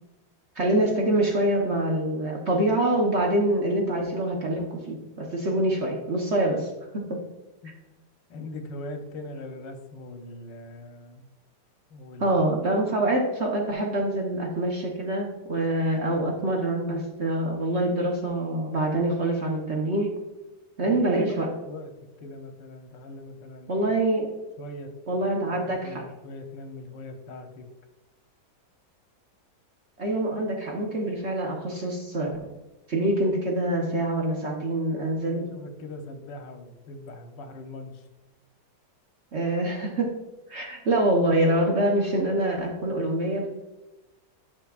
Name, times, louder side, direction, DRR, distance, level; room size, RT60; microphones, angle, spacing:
voice 1, 0.6-7.2 12.2-20.1 20.8-21.5 23.7-24.3 25.1-26.0 30.0-32.5 32.9-35.4 39.3-40.1 40.5-43.5, right 1 dB, 45° right, 0 dB, 1.0 m, -25 dB
voice 2, 8.3-11.3 11.9-12.4 20.8-21.9 22.2-23.8 24.6-24.9 25.6-27.6 35.2-38.0, left 2 dB, 80° left, 5 dB, 1.5 m, -41 dB
10.5 x 5.9 x 2.4 m, 1.0 s
omnidirectional pair, 2.0 m